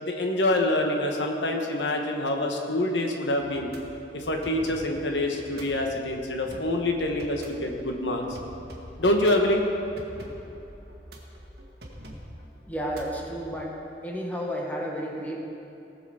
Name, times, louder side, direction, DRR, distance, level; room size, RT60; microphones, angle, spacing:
voice 1, 0.0-3.7 4.1-8.4 9.0-9.6, left 1 dB, 85° left, 2 dB, 1.3 m, -26 dB
sound 1, 3.4-13.6, equal, 60° right, 1.8 m, -45 dB
voice 2, 12.7-13.7 14.0-15.4, equal, 10° left, -2 dB, 1.5 m, -32 dB
18.5 x 6.8 x 4.9 m, 2.9 s
head